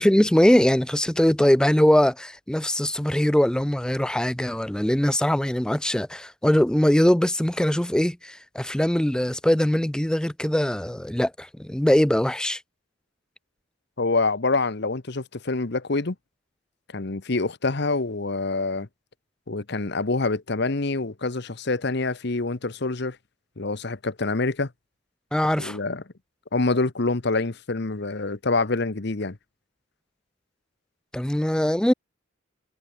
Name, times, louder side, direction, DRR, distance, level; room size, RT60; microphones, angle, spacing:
voice 1, 0.0-12.6 25.3-25.8 31.1-31.9, equal, 5° left, 0.3 m, -21 dB
voice 2, 14.0-16.1 16.9-18.9 19.5-23.2 23.6-24.7 25.6-26.0 26.5-29.4, left 3 dB, 55° left, 1.0 m, -26 dB
head